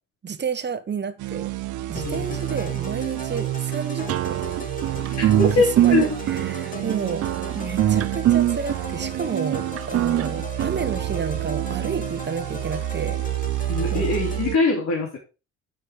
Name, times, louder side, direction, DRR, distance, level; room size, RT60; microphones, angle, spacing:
voice 1, 0.2-1.5 1.9-4.4 5.4-7.3 7.5-13.2 13.9-14.1, right 6 dB, 35° right, 1.3 m, -30 dB
sound 1, 1.2-14.6, right 16 dB, 80° right, 0.9 m, -30 dB
sound 2, 1.9-14.4, left 3 dB, 25° left, 1.6 m, -38 dB
voice 2, 2.0-2.4 5.2-6.2 13.7-15.2, left 3 dB, 60° left, 3.2 m, -23 dB
sound 3, 4.1-11.5, right 12 dB, 50° right, 0.5 m, -23 dB
9.0 x 6.5 x 4.9 m
cardioid pair, 90°, 30 cm